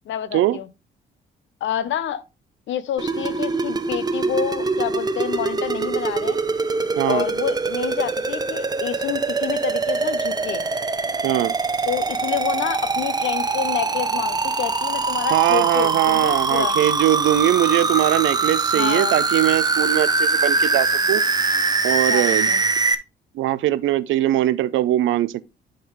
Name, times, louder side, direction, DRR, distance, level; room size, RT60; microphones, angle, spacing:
voice 1, 0.1-0.7 1.6-2.2 2.7-6.4 7.1-10.6 11.9-16.8 18.7-19.2 22.1-22.6, left 10 dB, 70° left, 0.8 m, -28 dB
sound 1, 3.0-22.9, right 3 dB, 20° right, 0.7 m, -23 dB
voice 2, 7.0-7.3 11.2-11.5 15.3-21.2 21.8-22.5 23.3-25.4, right 14 dB, 80° right, 0.5 m, -21 dB
11.0 x 3.8 x 3.1 m
cardioid pair, 90°, 20 cm